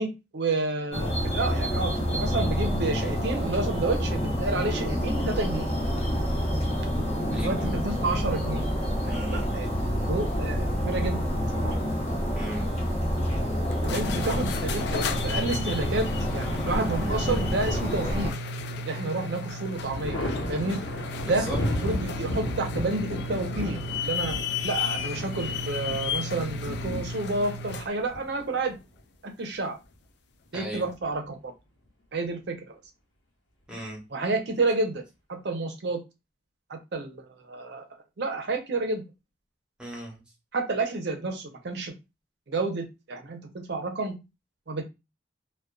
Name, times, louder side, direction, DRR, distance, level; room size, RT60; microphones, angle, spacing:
voice 1, 0.0-5.7 7.4-8.6 9.1-9.7 10.1-11.2 11.5-11.8 13.8-18.3 18.8-20.2 20.5-20.8 21.3-21.5 21.8-24.4 24.6-28.8 29.2-29.8 30.5-31.5 32.1-32.7 34.1-35.0 35.3-36.0 36.7-37.2 37.5-37.8 38.2-39.0 40.5-41.9 42.5-44.2 44.7-44.8, right 3 dB, 65° right, 4 dB, 0.6 m, -30 dB
sound 1, 0.9-18.3, equal, 35° left, 0.7 m, -28 dB
voice 2, 7.3-7.7 9.0-9.5 12.3-12.7 21.2-21.6 30.5-30.9 33.7-34.0 39.8-40.2, right 1 dB, 5° right, -2 dB, 0.8 m, -37 dB
sound 2, 13.7-28.0, left 4 dB, 65° left, 0.3 m, -34 dB
Thunder, 18.4-19.0 19.4-29.0 30.5-31.3, left 1 dB, 90° left, 0.9 m, -35 dB
2.5 x 2.2 x 2.3 m, 0.25 s
head